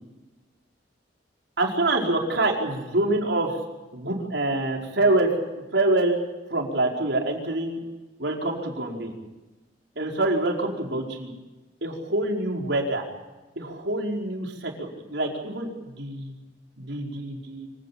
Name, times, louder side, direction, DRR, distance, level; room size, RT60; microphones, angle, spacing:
voice 1, 1.6-3.6 3.9-5.3 5.7-6.2 6.5-7.8 8.2-9.1 10.0-11.3 11.8-13.0 13.6-16.3 16.8-17.7, right 2 dB, 75° right, 0 dB, 5.0 m, -26 dB
25.5 x 17.0 x 8.7 m, 1.1 s
head